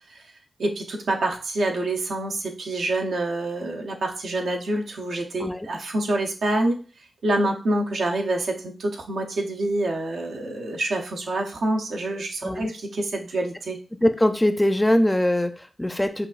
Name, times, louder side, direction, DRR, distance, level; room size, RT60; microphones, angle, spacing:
voice 1, 0.6-6.9 7.2-13.8, right 2 dB, 85° right, 1 dB, 0.7 m, -26 dB
voice 2, 14.0-16.3, left 1 dB, 10° left, 8 dB, 0.4 m, -22 dB
5.9 x 2.5 x 2.4 m, 0.36 s
wide cardioid pair, 90°, 0 cm